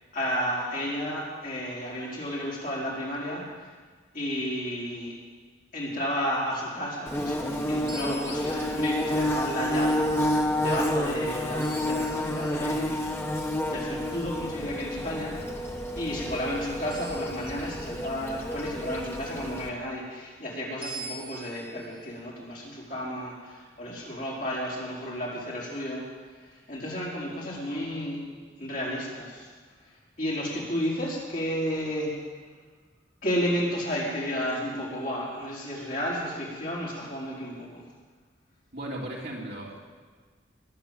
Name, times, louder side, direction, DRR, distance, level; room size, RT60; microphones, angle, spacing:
voice 1, 0.0-3.7 4.1-5.1 5.7-7.4 7.7-13.0 13.7-15.4 16.0-26.1 26.4-28.2 28.6-29.5 29.8-32.1 33.2-37.8, equal, 45° left, -6 dB, 4.6 m, -32 dB
Bird / Buzz, 7.1-19.7, left 1 dB, 10° left, 1.1 m, -29 dB
sound 1, 7.9-13.4 16.9-19.0 20.8-22.1, right 2 dB, 30° right, 4.6 m, -46 dB
voice 2, 38.7-39.8, right 1 dB, 55° right, -3 dB, 3.2 m, -36 dB
21.0 x 8.2 x 7.5 m, 1.5 s
head